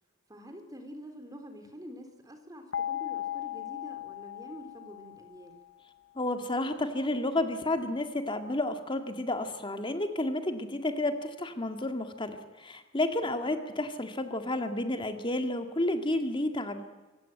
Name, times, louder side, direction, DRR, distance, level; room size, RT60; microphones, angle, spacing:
voice 1, 0.3-5.5 13.2-13.5, equal, 20° right, 6 dB, 3.6 m, -47 dB
sound 1, 2.7-5.7, left 11 dB, 75° left, 1.1 m, -37 dB
voice 2, 6.2-16.8, left 1 dB, 25° left, 7 dB, 2.0 m, -31 dB
25.5 x 17.0 x 9.2 m, 1.2 s
head